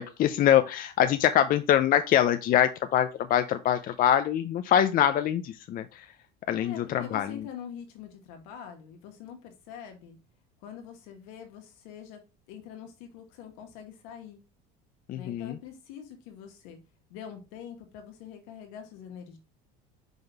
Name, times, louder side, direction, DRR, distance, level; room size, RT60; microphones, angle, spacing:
voice 1, 0.0-6.1 6.5-7.4 15.1-15.6, left 10 dB, 45° left, 9 dB, 0.5 m, -24 dB
voice 2, 6.6-10.2 10.6-12.2 12.5-14.4 15.1-16.8 17.1-19.4, left 8 dB, 80° left, 4 dB, 1.7 m, -44 dB
5.4 x 3.9 x 4.5 m, 0.31 s
supercardioid pair, 105°, 21 cm